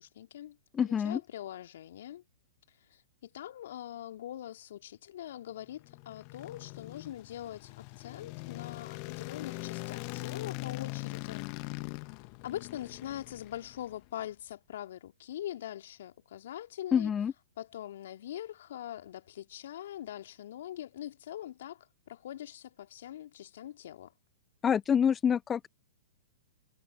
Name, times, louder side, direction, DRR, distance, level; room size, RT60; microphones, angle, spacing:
voice 1, 0.0-0.6 0.8-2.2 2.9-11.5 12.4-17.1 17.6-24.1, left 12 dB, 60° left, 2.6 m, -43 dB
voice 2, 0.7-1.2 16.9-17.3 24.6-25.7, left 8 dB, 20° left, 0.3 m, -26 dB
sound 1, 5.6-14.1, left 32 dB, 40° left, 1.3 m, -41 dB
figure-of-eight pair, 110°, 0 cm